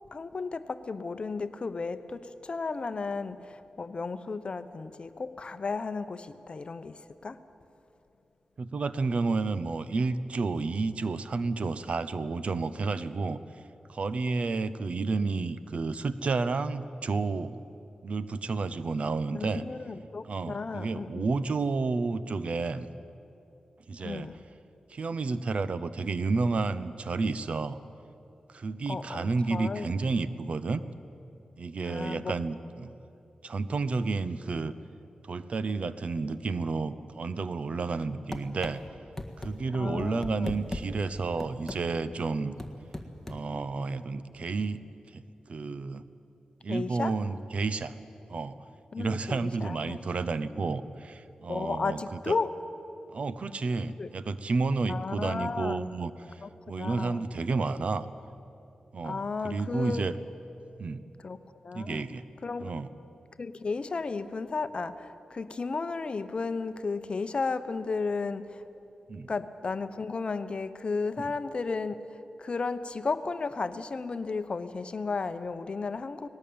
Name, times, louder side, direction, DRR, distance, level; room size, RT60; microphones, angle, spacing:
voice 1, 0.1-7.4 19.3-21.3 24.0-24.3 28.9-29.9 31.9-32.3 39.8-40.5 46.7-47.1 48.9-50.0 51.5-52.5 54.0-54.1 54.9-55.9 56.4-56.5 56.8-57.3 59.0-60.1 61.2-62.0 62.4-62.8 63.4-68.6 69.3-72.0 72.4-76.3, left 4 dB, 45° left, 11 dB, 0.9 m, -34 dB
voice 2, 8.6-13.4 13.9-17.6 18.0-19.6 20.2-22.9 23.9-24.3 24.9-27.8 28.5-30.8 31.6-32.9 33.4-34.8 35.2-38.8 39.4-42.5 43.3-44.8 45.1-45.2 45.5-46.0 46.6-47.9 48.3-48.6 49.0-52.4 53.1-56.4 56.7-58.1 58.9-60.1 60.8-61.0 61.7-62.2 62.6-62.9 69.1-69.3, right 4 dB, 60° right, 14 dB, 0.8 m, -31 dB
sound 1, 38.3-38.8 39.2-39.5 40.0-40.9 41.4-41.8 42.6-43.4, left 2 dB, 15° left, 1.7 m, -36 dB
19.5 x 18.0 x 8.7 m, 2.8 s
wide cardioid pair, 95°, 2 cm